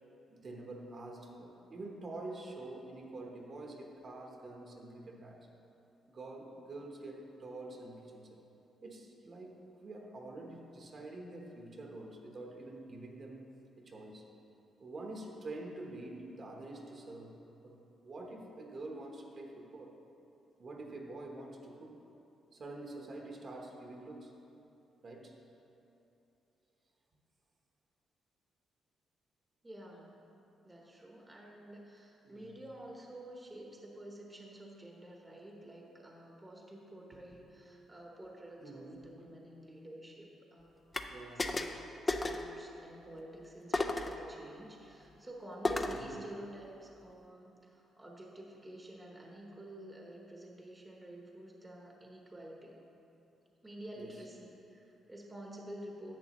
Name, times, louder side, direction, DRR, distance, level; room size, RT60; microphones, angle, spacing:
voice 1, 0.3-5.5 6.1-8.4 8.8-13.5 13.8-14.2 14.8-20.0 20.6-22.0 22.5-24.3 25.0-25.4 32.2-32.6 37.3-37.4 38.6-39.3 41.1-41.5 45.9-46.2 54.0-54.2, right 2 dB, 40° right, 1 dB, 1.0 m, -47 dB
voice 2, 29.6-30.2 30.6-40.9 41.3-41.6 42.1-52.8 53.6-56.2, right 1 dB, 15° right, -1 dB, 1.0 m, -50 dB
sound 1, 40.9-41.1 41.4-41.8 42.1-42.5 43.7-44.2 45.6-46.1, left 2 dB, 20° left, 0.5 m, -33 dB
10.5 x 8.0 x 3.0 m, 2.9 s
cardioid pair, 115°, 0 cm